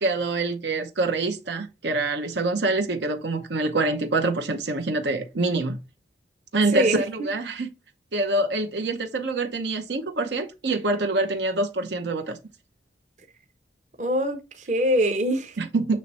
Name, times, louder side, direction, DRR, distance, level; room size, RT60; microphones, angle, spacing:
voice 1, 0.0-5.8 6.5-7.7 8.1-12.4 15.6-16.0, right 2 dB, 75° right, 0.8 m, -25 dB
voice 2, 6.7-7.3 14.0-15.6, equal, 40° right, 0.9 m, -24 dB
7.5 x 3.1 x 4.2 m
head